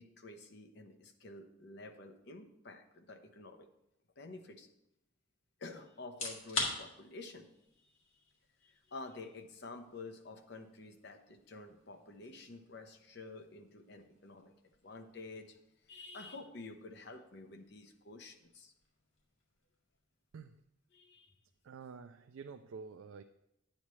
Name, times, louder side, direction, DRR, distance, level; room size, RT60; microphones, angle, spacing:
voice 1, 0.0-3.7 4.2-4.7 5.6-7.5 8.6-14.5 14.8-15.6 15.9-18.7 20.9-21.3, left 3 dB, 55° left, 5 dB, 0.9 m, -50 dB
sound 1, 6.0-20.9, left 3 dB, 80° left, 2.2 m, -48 dB
voice 2, 21.6-23.2, right 5 dB, 80° right, 8 dB, 0.4 m, -49 dB
9.7 x 8.6 x 3.2 m, 0.84 s
head